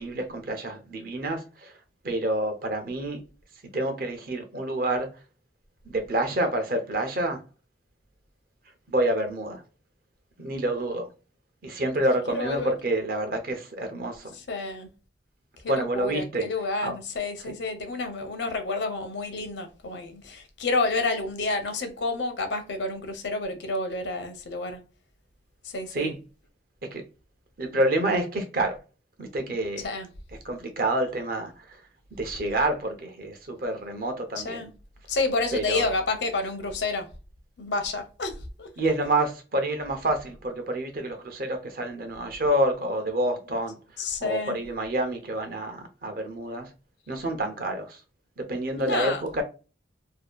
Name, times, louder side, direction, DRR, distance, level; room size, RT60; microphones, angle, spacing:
voice 1, 0.0-1.7 2.0-3.2 3.7-5.1 5.8-7.4 8.9-9.6 10.4-11.1 11.6-14.3 15.7-16.5 16.8-17.0 25.9-26.1 26.9-27.0 27.6-28.8 29.2-29.9 30.4-31.8 32.1-34.7 35.5-35.9 38.8-43.8 44.2-46.7 47.1-48.0 48.4-49.4, right 1 dB, 50° right, 0.6 m, -28 dB
voice 2, 12.3-12.7 14.3-14.9 15.6-24.8 25.6-26.1 29.8-30.1 34.4-34.7 35.1-37.1 37.6-38.7 44.0-44.6 48.8-49.3, left 3 dB, 70° left, 0.6 m, -29 dB
2.7 x 2.4 x 2.2 m
head